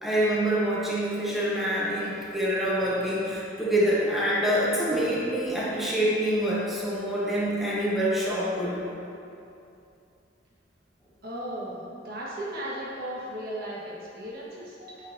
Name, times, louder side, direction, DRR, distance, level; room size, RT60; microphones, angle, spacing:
voice 1, 0.0-8.8, equal, ahead, -8 dB, 1.1 m, -26 dB
voice 2, 11.2-15.1, right 1 dB, 55° right, -6 dB, 1.4 m, -36 dB
8.6 x 5.1 x 2.7 m, 2.6 s
head